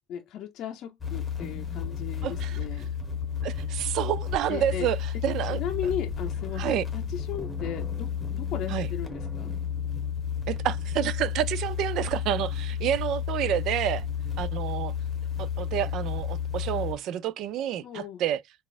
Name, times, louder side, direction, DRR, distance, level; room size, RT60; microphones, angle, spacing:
voice 1, 0.1-2.9 4.5-4.9 5.4-9.5 17.8-18.2, left 9 dB, 55° left, 0.5 m, -36 dB
sound 1, 1.0-16.9, left 7 dB, 10° left, 1.1 m, -32 dB
voice 2, 2.2-2.6 3.4-5.0 5.2-5.6 6.6-6.8 8.7-8.9 10.5-14.1 14.4-14.9 15.4-18.4, right 11 dB, 60° right, 0.3 m, -29 dB
3.9 x 2.4 x 2.4 m
cardioid pair, 130°, 0 cm